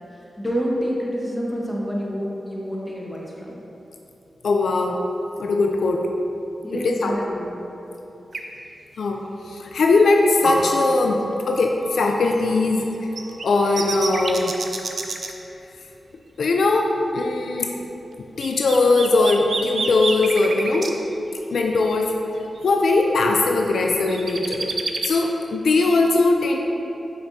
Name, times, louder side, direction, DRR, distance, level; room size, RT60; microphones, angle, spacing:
voice 1, 0.4-3.5 6.6-7.5, equal, 15° left, -3 dB, 1.3 m, -27 dB
voice 2, 4.4-5.0 5.4-6.0 6.7-7.1 9.0-9.2 9.5-12.9 13.4-14.5 16.4-18.0 18.4-20.9 21.5-22.1 22.6-24.7 25.0-26.6, left 3 dB, 80° left, 2 dB, 0.4 m, -20 dB
sound 1, 8.3-8.4 12.4-12.5 13.2-15.3 18.4-20.9 22.1-22.2 22.6-22.7 23.8-25.1, right 3 dB, 65° right, 0.5 m, -28 dB
Piano, 10.3-16.2 16.5-18.1 18.4-24.8, equal, 50° left, 1.2 m, -35 dB
6.2 x 5.9 x 2.7 m, 3.0 s
cardioid pair, 55°, 0 cm